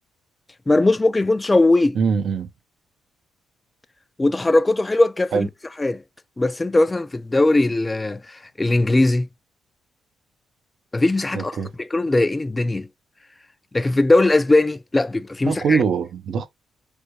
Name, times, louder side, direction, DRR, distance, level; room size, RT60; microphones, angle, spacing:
voice 1, 0.7-2.0 4.2-5.5 5.8-6.0 6.4-9.3 10.9-12.9 13.7-15.8, left 2 dB, 20° left, 0.3 m, -19 dB
voice 2, 1.9-2.5 5.3-5.5 11.3-11.7 15.5-16.5, right 6 dB, 60° right, 0.5 m, -22 dB
3.4 x 2.2 x 3.0 m
cardioid pair, 90°, 0 cm